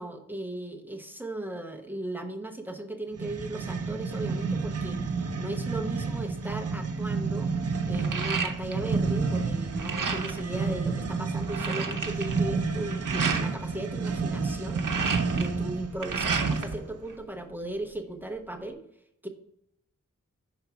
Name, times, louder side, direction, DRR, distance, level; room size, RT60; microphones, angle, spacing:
voice 1, 0.0-5.0 5.4-7.5 7.9-14.9 15.2-18.8 19.2-19.3, right 1 dB, 5° right, 3 dB, 0.7 m, -37 dB
sound 1, 3.2-16.9, right 4 dB, 50° right, 0.7 m, -30 dB
sound 2, 6.8-6.9 7.2-9.0 9.3-10.5 11.0-11.1 11.2-13.5 14.5-16.8 17.1-18.0, right 5 dB, 85° right, 0.8 m, -32 dB
5.8 x 4.0 x 5.9 m, 0.78 s
wide cardioid pair, 115°, 31 cm